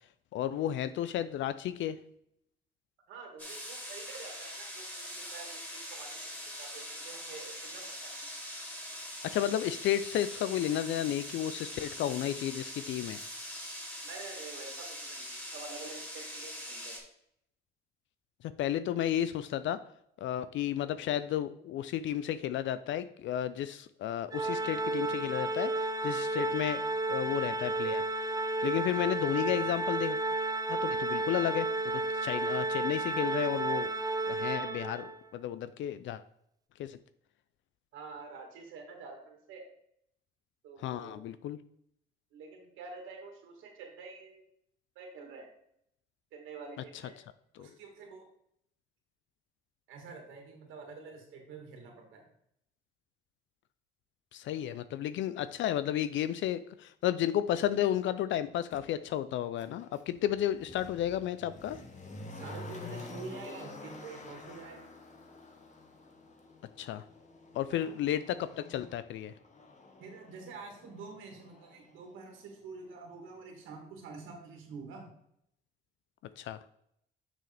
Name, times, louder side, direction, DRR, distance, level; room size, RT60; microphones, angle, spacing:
voice 1, 0.3-2.0 9.3-13.2 18.6-19.8 20.2-26.8 27.1-28.0 28.6-30.2 30.7-31.7 32.1-33.9 34.3-36.2 36.8-37.0 40.8-41.6 47.6-47.7 54.3-61.8 66.8-67.0 67.5-69.3 76.4-76.6, left 11 dB, 75° left, 13 dB, 0.4 m, -32 dB
voice 2, 3.1-8.1 14.0-17.0 31.4-31.5 37.9-39.6 40.6-41.3 42.3-44.4 45.0-45.5 46.3-47.1 47.6-48.2 49.9-52.2 62.3-64.8 67.7-67.9 70.0-75.1, right 4 dB, 90° right, 2 dB, 1.8 m, -47 dB
sound 1, 3.4-17.0, equal, 10° left, 2.6 m, -43 dB
Organ, 24.3-35.2, right 2 dB, 20° right, 0.5 m, -32 dB
Motor vehicle (road), 58.7-58.8 59.6-72.5 72.8-72.9, left 2 dB, 35° left, 1.4 m, -49 dB
6.6 x 6.2 x 3.4 m, 0.73 s
cardioid pair, 90°, 20 cm